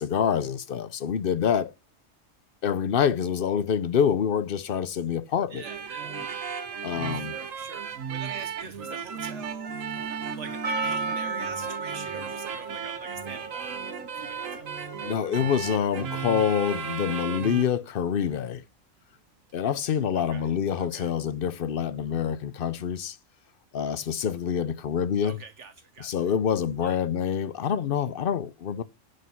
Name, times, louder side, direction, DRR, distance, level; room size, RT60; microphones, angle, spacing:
voice 1, 0.0-1.7 2.6-5.6 6.8-7.3 15.0-18.6 19.5-23.2 23.7-25.4 26.0-28.8, left 8 dB, 50° left, 0.8 m, -26 dB
voice 2, 5.5-6.2 7.1-14.7 20.1-20.5 20.8-21.1 25.2-26.2 26.8-27.0, right 6 dB, 70° right, 1.1 m, -44 dB
sound 1, 5.6-17.7, right 6 dB, 85° right, 1.7 m, -35 dB
Percussion, 10.6-15.6, right 4 dB, 45° right, 2.5 m, -35 dB
11.0 x 5.3 x 5.7 m
omnidirectional pair, 1.3 m